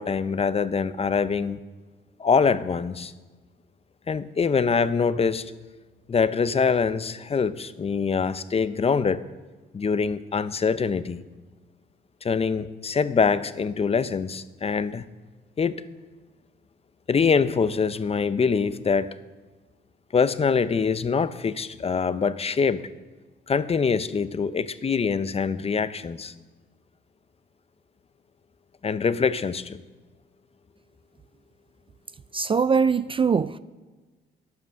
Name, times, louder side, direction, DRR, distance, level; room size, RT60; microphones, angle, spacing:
voice 1, 0.0-1.6 2.2-3.1 4.1-5.5 6.1-9.2 9.7-11.2 12.2-15.0 15.6-15.8 17.1-19.1 20.1-22.9 23.5-26.3 28.8-29.8, left 5 dB, 30° left, 0.6 m, -24 dB
voice 2, 32.3-33.6, right 5 dB, 25° right, 0.3 m, -22 dB
11.0 x 9.5 x 6.4 m
cardioid pair, 90°, 20 cm